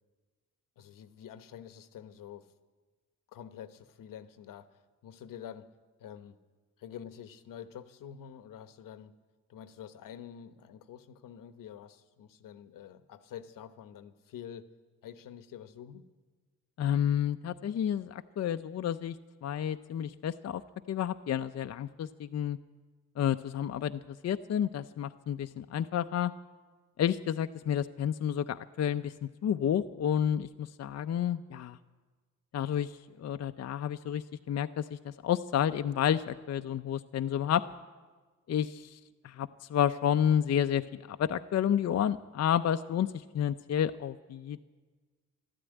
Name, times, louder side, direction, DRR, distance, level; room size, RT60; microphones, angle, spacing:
voice 1, 0.8-2.5 3.3-4.7 5.0-5.7 6.0-6.4 6.8-9.1 9.5-14.7 15.0-16.1, left 9 dB, 85° left, 12 dB, 1.0 m, -47 dB
voice 2, 16.8-19.2 19.4-20.6 20.9-22.6 23.2-26.3 27.0-29.1 29.4-31.8 32.5-32.9 33.2-37.6 38.5-39.0 39.2-43.1 43.3-44.6, left 9 dB, 55° left, 9 dB, 0.6 m, -30 dB
12.5 x 12.5 x 9.0 m, 1.4 s
cardioid pair, 80°, 32 cm